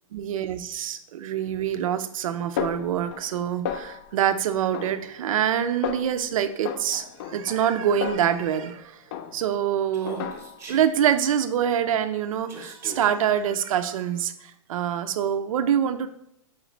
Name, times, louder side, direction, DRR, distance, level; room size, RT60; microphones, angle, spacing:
voice 1, 0.1-9.0 9.3-10.3 10.7-16.1, right 9 dB, 75° right, 10 dB, 0.4 m, -25 dB
Snare drum, 2.6-3.4 3.7-4.2 4.7-5.5 5.8-6.2 6.7-8.8 9.1-9.6 10.1-10.8, left 8 dB, 40° left, 0.4 m, -34 dB
Human voice, 9.9-10.9 12.5-13.1, right 2 dB, 15° right, 0.8 m, -41 dB
4.3 x 3.8 x 3.1 m, 0.77 s
hypercardioid pair, 140°, 18 cm